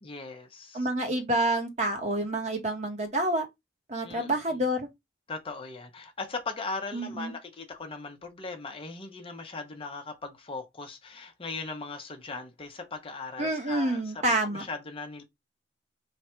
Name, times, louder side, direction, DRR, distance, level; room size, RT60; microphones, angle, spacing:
voice 1, 0.0-0.9 4.0-4.6 5.3-15.2, left 3 dB, 30° left, 0.8 m, -39 dB
voice 2, 0.7-3.4 3.9-4.9 6.9-7.3 13.4-14.6, right 1 dB, 40° right, 1.2 m, -28 dB
3.3 x 2.4 x 4.2 m
head